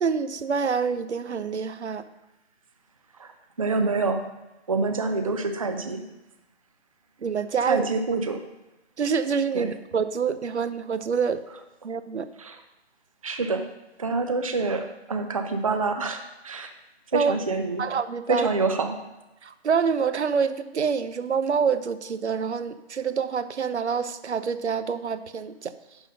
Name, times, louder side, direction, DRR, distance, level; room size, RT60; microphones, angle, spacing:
voice 1, 0.0-2.0 7.2-7.9 9.0-11.4 11.8-12.3 17.1-17.3 17.8-18.5 19.4-25.7, right 6 dB, 80° right, 13 dB, 0.7 m, -26 dB
voice 2, 3.6-4.2 4.7-6.0 7.7-8.4 9.5-9.7 12.4-12.6 13.2-13.6 14.0-16.7 17.1-17.9 18.3-19.0, right 3 dB, 30° right, 7 dB, 0.6 m, -26 dB
11.0 x 3.9 x 6.4 m, 1.0 s
figure-of-eight pair, 160°, 33 cm